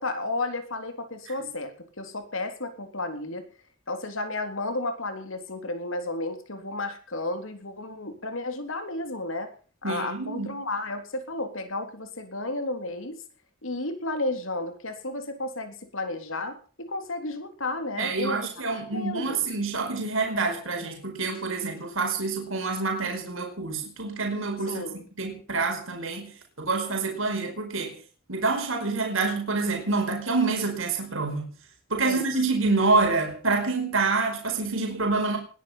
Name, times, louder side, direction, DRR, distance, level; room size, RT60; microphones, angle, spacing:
voice 1, 0.0-3.5 3.9-9.5 9.8-13.2 13.6-18.4 18.7-19.4 24.7-25.0 32.0-32.3, left 2 dB, 75° left, 8 dB, 3.6 m, -32 dB
voice 2, 9.8-10.5 18.0-24.8 25.2-26.3 26.6-28.0 28.3-31.5 31.9-35.4, right 3 dB, 75° right, 3 dB, 4.9 m, -27 dB
20.5 x 12.0 x 5.8 m, 0.41 s
head